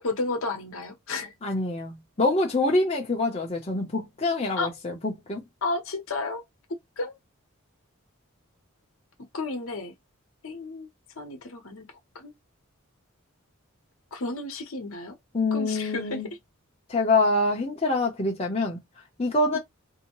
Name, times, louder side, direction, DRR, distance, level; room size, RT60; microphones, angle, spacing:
voice 1, 0.0-1.3 4.6-4.7 5.6-6.4 7.0-7.1 9.3-9.9 10.4-10.9 11.2-11.9 12.1-12.3 14.1-15.2 15.5-16.2 19.5-19.6, left 3 dB, 70° left, 0.9 m, -32 dB
voice 2, 1.4-5.4 15.3-16.3 16.9-18.8 19.2-19.6, left 2 dB, 30° left, 0.6 m, -25 dB
2.7 x 2.1 x 2.9 m
head